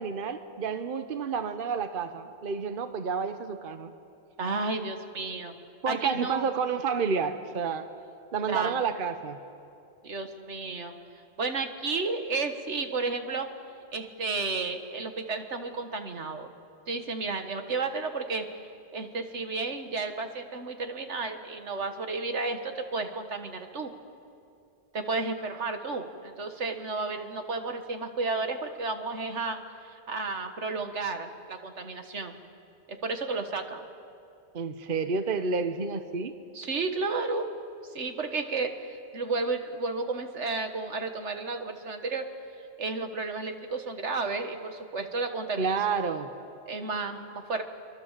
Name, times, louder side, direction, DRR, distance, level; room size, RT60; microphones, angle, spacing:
voice 1, 0.0-3.9 5.8-7.9 8.3-9.4 34.5-36.3 45.6-46.3, right 5 dB, 50° right, 9 dB, 1.1 m, -30 dB
voice 2, 4.4-5.5 5.9-6.4 8.5-8.8 10.0-10.9 11.4-13.5 13.9-16.5 16.9-18.5 18.9-23.9 24.9-32.4 32.9-33.9 36.5-37.5 37.9-42.3 42.8-46.0 46.7-47.6, right 3 dB, 85° right, 6 dB, 1.8 m, -32 dB
26.0 x 23.5 x 7.4 m, 2.6 s
omnidirectional pair, 1.2 m